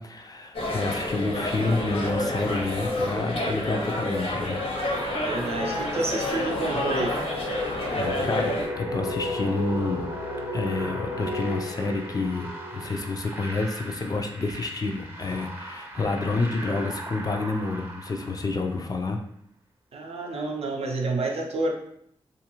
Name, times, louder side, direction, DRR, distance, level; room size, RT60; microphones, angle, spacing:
voice 1, 0.0-4.6 8.0-10.1 10.5-19.2, left 3 dB, 35° left, 4 dB, 0.4 m, -29 dB
sound 1, 0.5-8.7, left 1 dB, 65° left, 0.7 m, -29 dB
sound 2, 2.8-13.6, left 1 dB, 90° left, 1.0 m, -35 dB
sound 3, 4.6-19.0, right 2 dB, 20° right, 0.6 m, -41 dB
voice 2, 5.2-7.2 19.9-21.7, right 2 dB, 75° right, 1 dB, 0.5 m, -29 dB
2.6 x 2.4 x 2.9 m, 0.69 s
wide cardioid pair, 90°, 11 cm